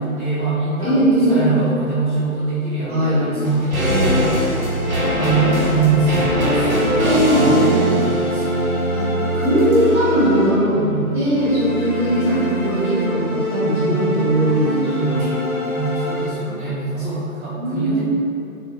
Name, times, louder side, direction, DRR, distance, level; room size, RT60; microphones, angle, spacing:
voice 1, 0.0-4.1 5.1-8.8 10.7-11.0 13.6-14.1 14.9-18.0, right 3 dB, 25° right, -16 dB, 1.0 m, -24 dB
voice 2, 0.8-1.4 2.9-3.3 3.8-4.2 7.0-7.5 8.9-9.1 9.3-10.8 11.1-15.3 17.5-18.0, equal, 45° right, -10 dB, 1.1 m, -19 dB
sound 1, 3.4-12.8 13.1-13.2, right 1 dB, 75° right, 1.0 m, -23 dB
sound 2, 4.5-10.9 11.3-16.3, equal, 45° left, 0.9 m, -25 dB
2.6 x 2.2 x 3.4 m, 2.8 s
figure-of-eight pair, 140°, 43 cm